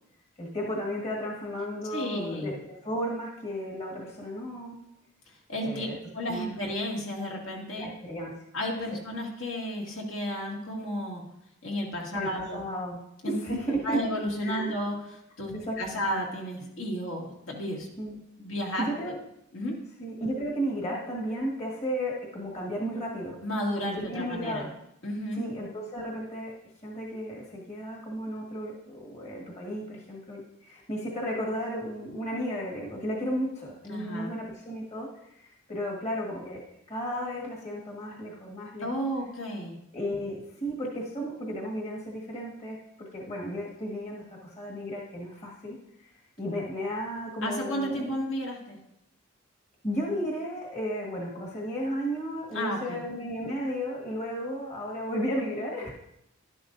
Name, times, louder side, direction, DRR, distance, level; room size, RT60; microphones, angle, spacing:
voice 1, 0.4-4.7 5.6-6.0 6.3-6.6 7.7-8.3 12.1-13.0 13.2-14.0 14.4-14.7 15.5-16.0 18.0-18.2 18.9-19.2 20.0-23.4 23.9-24.7 25.4-26.5 26.8-35.1 35.3-36.6 36.9-38.9 39.9-46.1 46.4-48.1 49.8-55.9, equal, 30° left, -3 dB, 1.6 m, -34 dB
voice 2, 1.9-2.6 5.5-5.9 6.1-7.9 8.5-11.2 11.6-12.6 13.2-13.3 13.8-17.9 18.4-19.1 19.5-19.7 23.4-24.7 25.0-25.5 33.9-34.3 38.8-39.8 47.4-48.8 52.5-53.0, equal, 70° left, -2 dB, 2.1 m, -32 dB
11.5 x 11.0 x 2.6 m, 0.79 s
head